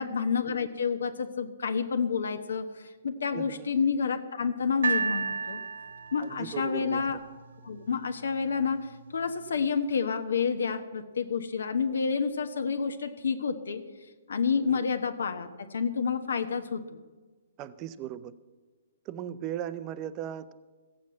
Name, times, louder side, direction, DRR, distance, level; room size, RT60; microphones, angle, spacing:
voice 1, 0.0-5.6 6.1-7.2 7.6-8.9 9.1-13.8 14.3-16.8, left 6 dB, 85° left, 7 dB, 1.1 m, -29 dB
voice 2, 3.3-3.7 6.2-7.2 14.7-14.8 17.6-18.3 19.1-20.5, right 10 dB, 15° right, 13 dB, 0.4 m, -37 dB
sound 1, 4.8-8.0 8.8-8.9, right 5 dB, 75° right, 1.3 m, -33 dB
15.5 x 7.5 x 8.4 m, 1.3 s
hypercardioid pair, 180°, 0 cm